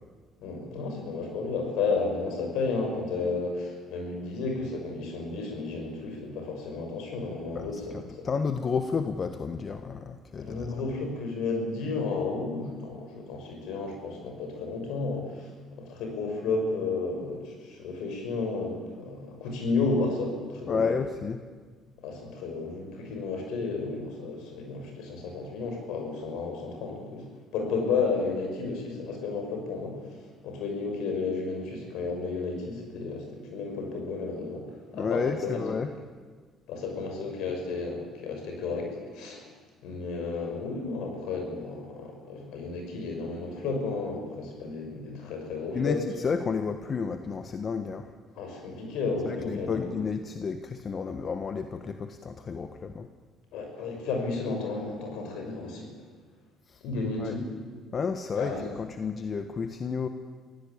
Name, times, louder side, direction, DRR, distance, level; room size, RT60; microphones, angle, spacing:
voice 1, 0.4-8.2 10.4-20.8 22.0-30.2 30.4-34.6 34.9-35.6 36.7-39.5 39.8-46.1 48.4-49.9 53.5-55.9 56.8-57.4 58.3-58.6, left 4 dB, 75° left, 3 dB, 6.2 m, -32 dB
voice 2, 7.5-10.7 20.7-21.4 34.9-35.9 45.7-48.1 49.2-53.1 56.7-56.8 57.2-57.3 57.9-60.1, left 5 dB, 45° left, 8 dB, 1.4 m, -31 dB
24.0 x 16.0 x 8.7 m, 1.5 s
supercardioid pair, 65°, 0 cm